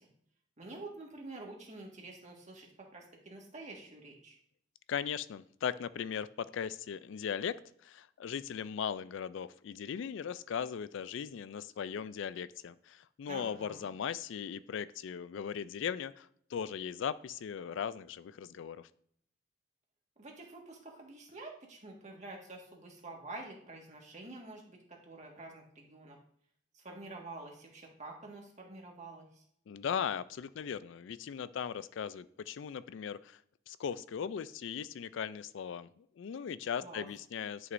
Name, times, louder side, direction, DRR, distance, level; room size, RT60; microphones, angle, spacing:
voice 1, 0.6-4.4 13.3-13.9 20.2-26.2 26.7-29.4 36.8-37.1, right 2 dB, 40° right, 0 dB, 1.7 m, -48 dB
voice 2, 4.9-7.6 7.8-18.9 29.7-33.4 33.7-37.7, left 7 dB, 65° left, 16 dB, 0.3 m, -38 dB
11.0 x 6.3 x 2.6 m, 0.66 s
head